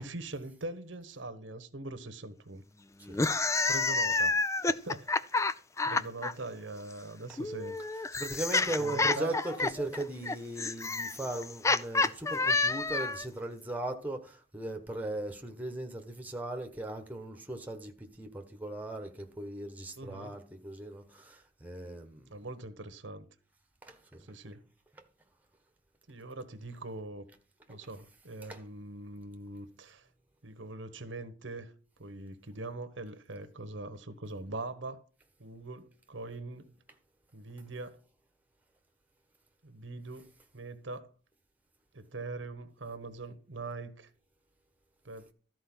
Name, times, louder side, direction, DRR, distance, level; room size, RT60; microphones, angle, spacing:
voice 1, 0.0-2.6 3.7-4.4 4.8-5.1 5.8-7.8 8.8-9.4 20.0-20.3 22.3-23.2 24.2-24.6 26.1-27.2 27.7-30.1 30.4-31.7 32.0-35.0 35.4-36.7 37.3-38.0 39.6-40.3 40.5-41.1 41.9-44.1 45.0-45.3, right 2 dB, 80° right, 1.2 m, -42 dB
sound 1, 3.1-6.3 7.4-13.3, left 3 dB, 15° left, 0.4 m, -29 dB
voice 2, 8.1-22.3 23.8-24.2 28.4-28.6, right 1 dB, 10° right, 1.3 m, -38 dB
13.5 x 4.6 x 6.1 m
head